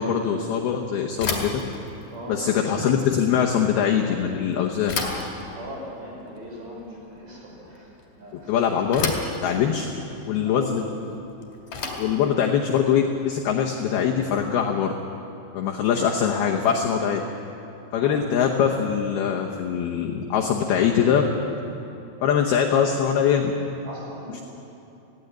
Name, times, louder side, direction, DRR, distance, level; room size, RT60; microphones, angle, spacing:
voice 1, 0.0-1.5 2.3-4.9 8.5-9.1 9.4-9.9 10.3-11.1 12.0-15.0 15.5-17.2 17.9-21.2 22.2-23.5, left 8 dB, 75° left, 1 dB, 2.4 m, -22 dB
Bicycle / Thump thud, 1.1-14.2, left 4 dB, 45° left, 2.9 m, -35 dB
voice 2, 2.1-2.4 5.5-7.9 8.2-8.5 10.4-10.7 17.9-18.2 23.8-24.4, equal, 45° right, -3 dB, 6.6 m, -39 dB
17.0 x 16.0 x 10.0 m, 2.9 s
omnidirectional pair, 5.8 m